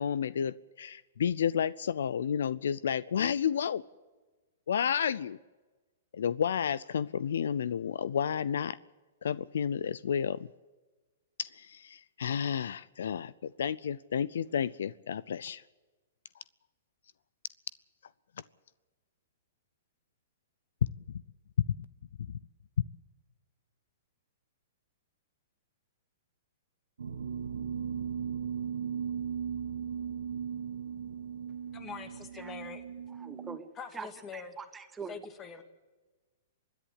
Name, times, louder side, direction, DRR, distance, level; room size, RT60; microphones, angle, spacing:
voice 1, 0.0-3.8 4.7-5.4 6.1-8.8 9.2-10.5 11.4-15.6 22.2-22.3, left 8 dB, 75° left, 20 dB, 0.5 m, -31 dB
sound 1, 27.0-33.6, right 7 dB, 85° right, 1.5 m, -37 dB
voice 2, 31.7-32.8 33.8-34.5 35.1-35.6, left 6 dB, 25° left, 8 dB, 2.3 m, -44 dB
voice 3, 33.2-34.1 34.3-35.2, right 5 dB, 15° right, 10 dB, 1.2 m, -43 dB
25.5 x 10.5 x 9.8 m, 1.2 s
hypercardioid pair, 130°, 0 cm